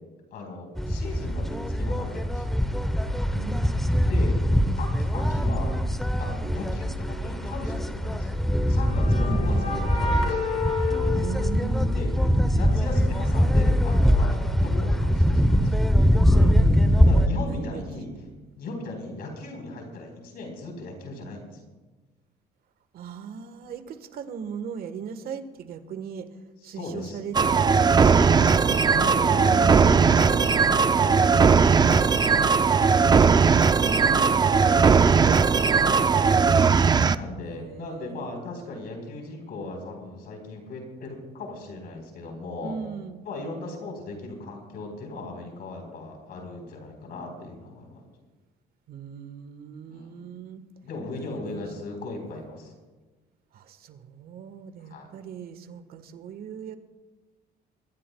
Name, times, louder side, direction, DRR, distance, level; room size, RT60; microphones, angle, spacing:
voice 1, 0.3-2.6 4.1-4.3 4.7-5.8 6.2-8.4 8.7-10.5 11.9-12.1 12.5-15.7 17.1-18.1 18.6-21.6 26.6-27.2 28.0-28.6 28.9-33.2 35.6-36.2 37.1-42.8 43.2-48.0 49.9-50.3 50.8-52.7 54.8-55.1, left 2 dB, 65° left, 2 dB, 4.2 m, -37 dB
sound 1, 0.8-17.3, equal, ahead, 0.8 m, -22 dB
voice 2, 3.3-4.2 9.2-9.9 11.1-12.5 16.3-17.1 17.4-17.8 22.9-26.3 26.6-27.8 28.6-30.0 33.8-36.2 37.4-38.4 42.6-43.2 48.9-50.6 51.1-51.6 53.5-56.8, right 6 dB, 65° right, 10 dB, 1.4 m, -38 dB
sound 2, 8.4-12.3, left 3 dB, 45° left, 4.8 m, -31 dB
sound 3, 27.3-37.2, right 5 dB, 25° right, 0.5 m, -19 dB
24.5 x 15.0 x 2.3 m, 1.3 s
cardioid pair, 110°, 17 cm